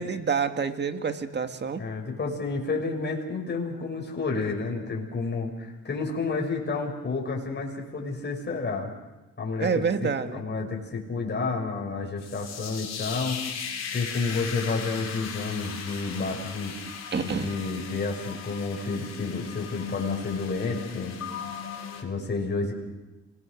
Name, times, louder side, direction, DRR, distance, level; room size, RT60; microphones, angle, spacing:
voice 1, 0.0-1.8 9.6-10.4 17.1-17.7, right 6 dB, 35° right, 7 dB, 1.9 m, -28 dB
voice 2, 1.8-8.9 9.4-13.4 13.9-16.7 17.2-21.2 22.0-22.7, left 4 dB, 35° left, 0 dB, 6.2 m, -30 dB
sound 1, 12.2-22.0, left 7 dB, 60° left, 4.5 m, -37 dB
27.0 x 20.5 x 6.6 m, 1.1 s
cardioid pair, 90°, 30 cm